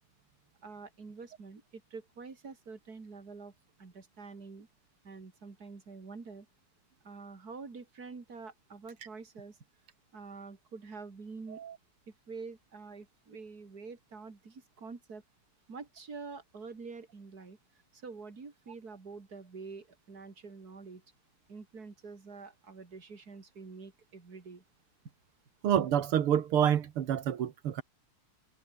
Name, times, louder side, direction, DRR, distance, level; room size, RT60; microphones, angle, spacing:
voice 1, 0.6-3.5 3.8-4.7 5.0-6.5 7.0-9.6 10.1-11.6 12.1-15.2 15.7-17.6 17.9-21.0 21.5-24.6, right 4 dB, 45° right, 3.7 m, -47 dB
voice 2, 25.6-27.8, right 9 dB, 85° right, 2.3 m, -28 dB
omnidirectional pair, 2.4 m